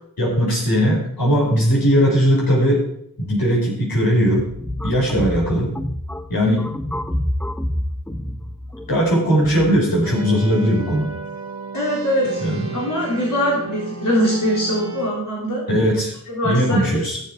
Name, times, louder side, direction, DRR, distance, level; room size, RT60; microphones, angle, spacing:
voice 1, 0.2-2.8 3.2-4.5 4.8-5.7 6.3-6.7 8.9-11.1 12.4-12.8 15.7-16.1 16.4-17.2, equal, 90° left, -4 dB, 5.4 m, -18 dB
sound 1, 4.4-9.8, left 1 dB, 5° left, 0.6 m, -28 dB
sound 2, 10.0-15.1, right 4 dB, 50° right, 1.8 m, -33 dB
voice 2, 11.7-12.4 12.7-15.6 16.3-17.0, equal, 65° left, -5 dB, 3.9 m, -22 dB
15.0 x 7.5 x 4.8 m, 0.72 s
wide cardioid pair, 90°, 35 cm